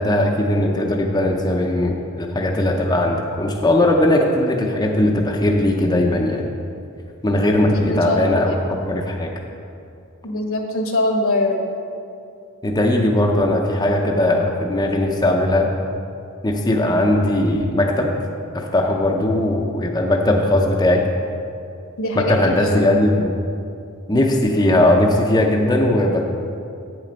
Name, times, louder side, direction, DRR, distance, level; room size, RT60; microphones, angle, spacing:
voice 1, 0.0-6.4 7.2-8.5 8.9-9.3 12.6-15.7 16.4-18.1 18.5-21.0 22.2-23.2 24.1-26.3, left 1 dB, 20° left, 0 dB, 0.6 m, -18 dB
voice 2, 7.7-8.6 10.2-11.6 22.0-22.8, left 1 dB, 65° left, 3 dB, 1.1 m, -23 dB
8.2 x 7.4 x 5.2 m, 2.5 s
head